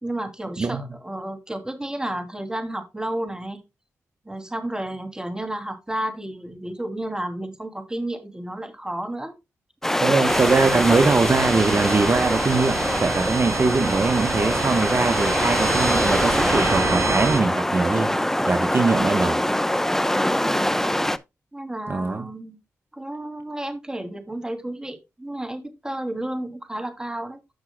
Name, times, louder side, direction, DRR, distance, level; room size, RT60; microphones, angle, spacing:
voice 1, 0.0-3.6 4.2-9.3 20.3-20.9 21.5-22.6 22.9-27.4, right 1 dB, 10° right, 2.8 m, -32 dB
sound 1, 9.8-21.2, left 1 dB, 5° left, 0.8 m, -23 dB
voice 2, 10.0-18.2 18.5-19.4 21.9-22.3, right 3 dB, 40° right, 1.0 m, -22 dB
sound 2, 10.3-17.4, right 5 dB, 60° right, 0.7 m, -28 dB
14.5 x 6.1 x 2.3 m
supercardioid pair, 50°, 6 cm